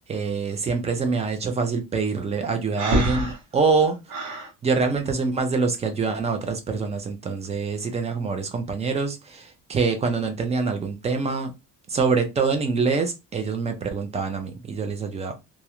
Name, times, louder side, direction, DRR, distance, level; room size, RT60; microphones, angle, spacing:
voice 1, 0.1-4.0 4.6-11.5 11.9-15.3, right 4 dB, 20° right, 0.3 m, -25 dB
Breathing, 2.8-4.5, equal, 65° right, 0.9 m, -26 dB
2.3 x 2.0 x 2.8 m
cardioid pair, 165°, 33 cm